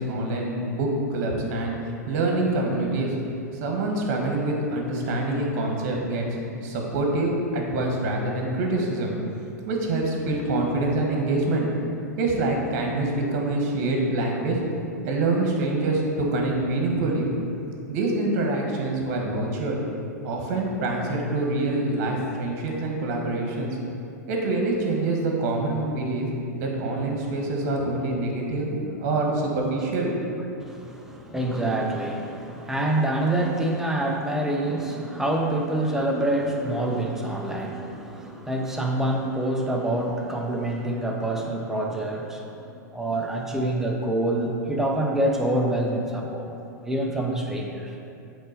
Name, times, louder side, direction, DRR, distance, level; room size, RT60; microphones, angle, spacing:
voice 1, 0.0-1.8 2.1-3.1 3.6-9.1 9.7-11.7 12.2-14.6 15.0-17.3 17.9-19.8 20.2-23.8 24.3-26.3 26.5-30.1, right 2 dB, 50° right, 0 dB, 1.5 m, -25 dB
voice 2, 30.6-46.6 46.8-48.0, right 1 dB, 5° right, 0 dB, 0.8 m, -26 dB
8.2 x 3.8 x 5.1 m, 2.6 s
figure-of-eight pair, 95°, 10 cm